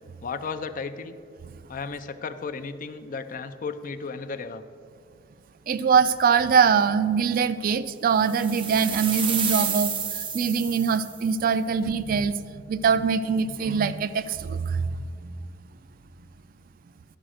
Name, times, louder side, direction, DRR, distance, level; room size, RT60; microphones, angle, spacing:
voice 1, 0.2-1.1 1.7-4.6, left 4 dB, 45° left, 11 dB, 0.4 m, -34 dB
voice 2, 5.7-9.9 10.3-15.3, right 6 dB, 50° right, 14 dB, 0.3 m, -23 dB
sound 1, 8.2-11.3, right 6 dB, 30° right, 0.8 m, -30 dB
11.0 x 5.0 x 6.3 m, 2.2 s
head